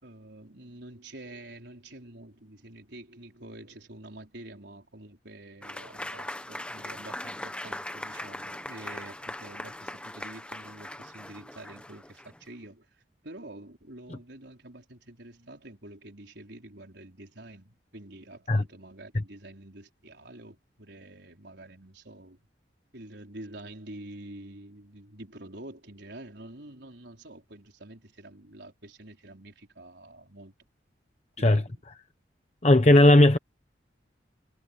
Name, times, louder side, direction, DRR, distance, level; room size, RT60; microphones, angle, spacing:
voice 1, 0.0-22.5 22.9-30.5 31.4-31.8 33.1-33.4, right 1 dB, 65° right, 4.3 m, -47 dB
Applause / Crowd, 5.6-12.4, left 1 dB, 5° left, 1.0 m, -40 dB
voice 2, 32.6-33.4, left 1 dB, 35° left, 0.9 m, -17 dB
head